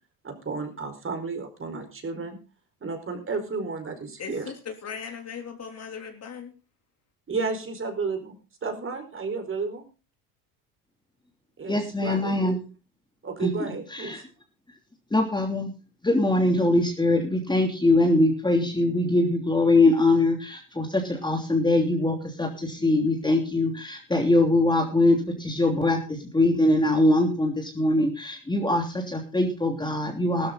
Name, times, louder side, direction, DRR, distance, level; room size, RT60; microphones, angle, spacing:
voice 1, 0.2-2.4 2.8-4.5 7.3-8.3 8.6-9.8 11.6-12.4 13.2-14.2, right 4 dB, 30° right, 6 dB, 4.7 m, -32 dB
voice 2, 4.2-6.5, left 6 dB, 35° left, 5 dB, 3.5 m, -38 dB
voice 3, 11.7-12.6 13.4-13.5 13.9-14.2 15.1-15.7 16.0-30.5, left 2 dB, 10° left, 2 dB, 3.1 m, -22 dB
15.0 x 13.5 x 4.0 m, 0.32 s
hypercardioid pair, 85°, 43 cm